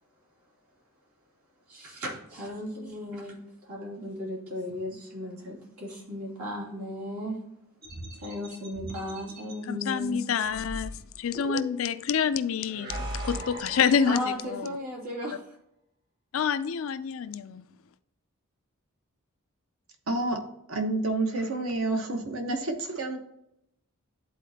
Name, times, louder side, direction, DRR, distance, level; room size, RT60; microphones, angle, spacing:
voice 1, 1.7-7.4 8.2-10.2 14.0-15.5, left 1 dB, 90° right, 2.8 m, -36 dB
sound 1, 7.8-9.6 10.5-12.0 12.6-14.8, equal, 45° right, 1.8 m, -39 dB
voice 2, 9.7-10.9 11.2-13.0 13.2-14.7 15.3-15.4 16.3-17.6, left 7 dB, 65° left, 0.4 m, -27 dB
voice 3, 20.1-20.4 20.7-23.2, right 2 dB, 70° right, 1.2 m, -29 dB
11.0 x 4.2 x 2.8 m
head